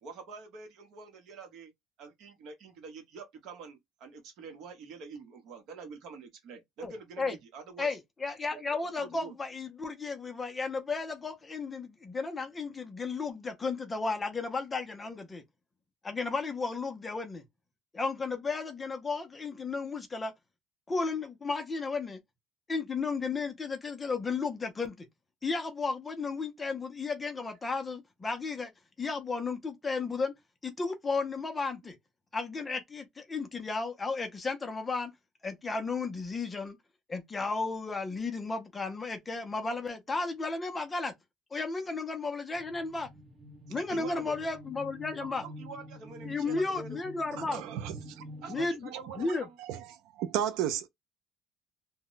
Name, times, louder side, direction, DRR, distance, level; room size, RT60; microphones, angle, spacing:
voice 1, 0.0-1.7 2.0-7.9 8.5-9.4 43.7-44.4 45.2-47.0 48.4-49.6, right 4 dB, 55° right, 0.8 m, -46 dB
voice 2, 6.8-7.4 7.8-15.4 16.0-17.4 17.9-20.3 20.9-22.2 22.7-25.1 25.4-28.7 29.0-30.3 30.6-32.0 32.3-35.1 35.4-36.8 37.1-41.1 41.5-43.1 43.7-45.4 46.2-47.6 48.5-48.9 49.2-49.4, left 4 dB, 15° left, 0.5 m, -34 dB
sound 1, 42.5-48.7, equal, 30° right, 0.7 m, -48 dB
voice 3, 47.3-48.2 48.9-49.3 49.6-49.9 50.1-50.9, right 10 dB, 75° right, 0.3 m, -34 dB
2.1 x 2.0 x 3.7 m
cardioid pair, 175°, 0 cm